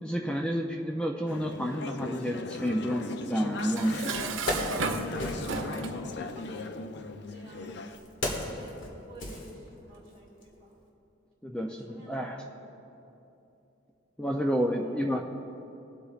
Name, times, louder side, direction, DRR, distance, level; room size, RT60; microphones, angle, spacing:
voice 1, 0.0-4.2 11.4-12.4 14.2-15.2, equal, 5° left, 1 dB, 0.4 m, -30 dB
Conversation / Chatter, 1.3-8.0, left 3 dB, 60° left, 0.5 m, -38 dB
Dishes pots and pans, 3.6-6.0, right 4 dB, 80° right, 0.7 m, -34 dB
Wood, 4.5-5.8 6.8-10.1 10.4-10.6, left 1 dB, 85° left, 1.8 m, -35 dB
voice 2, 5.1-6.8 7.3-8.1 8.5-10.8 11.5-13.0 14.6-14.9, right 1 dB, 30° right, -3 dB, 2.6 m, -51 dB
21.5 x 8.2 x 2.4 m, 2.8 s
head